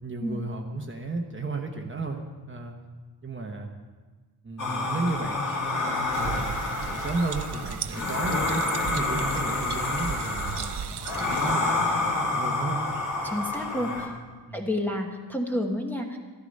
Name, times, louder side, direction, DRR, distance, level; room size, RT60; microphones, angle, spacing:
voice 1, 0.0-2.8 3.2-3.7 4.4-12.8 13.8-14.1 14.5-14.6, right 3 dB, 30° right, 3 dB, 1.0 m, -34 dB
sound 1, 4.6-14.1, left 2 dB, 45° left, 2.4 m, -28 dB
sound 2, 6.1-11.5, right 8 dB, 70° right, 0.7 m, -36 dB
voice 2, 13.2-14.1 14.5-16.2, left 1 dB, 5° left, 0 dB, 1.1 m, -30 dB
13.5 x 13.0 x 5.3 m, 1.3 s
wide cardioid pair, 170°, 42 cm